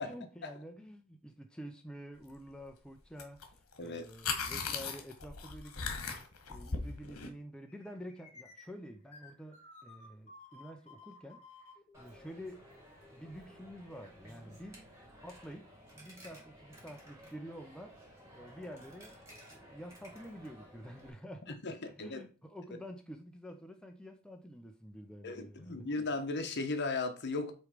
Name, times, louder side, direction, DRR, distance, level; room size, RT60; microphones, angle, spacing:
voice 1, 0.0-6.2 6.5-11.5 12.0-12.7 13.1-14.8 15.2-18.0 18.3-25.8, equal, 5° left, 0.6 m, -49 dB
sound 1, 3.2-3.5 3.7-7.3, left 5 dB, 70° left, 1.4 m, -38 dB
sound 2, 7.7-13.8, left 3 dB, 30° left, 2.7 m, -57 dB
Coin (dropping), 11.9-21.1, equal, 15° right, 2.4 m, -55 dB
voice 2, 21.6-22.2 25.2-27.5, left 3 dB, 50° left, 1.1 m, -36 dB
8.1 x 3.3 x 5.1 m
head